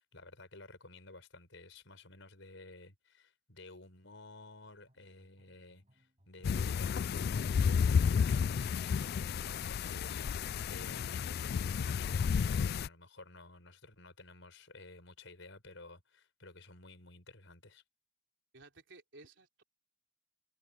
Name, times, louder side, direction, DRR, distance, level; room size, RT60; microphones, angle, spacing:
voice 1, 0.0-17.8, left 2 dB, 70° left, 6.4 m, -54 dB
sound 1, 4.9-12.7, equal, 35° right, 6.5 m, -71 dB
sound 2, 6.4-12.9, left 6 dB, 55° left, 0.3 m, -31 dB
voice 2, 18.5-19.6, right 3 dB, 65° right, 3.8 m, -56 dB
head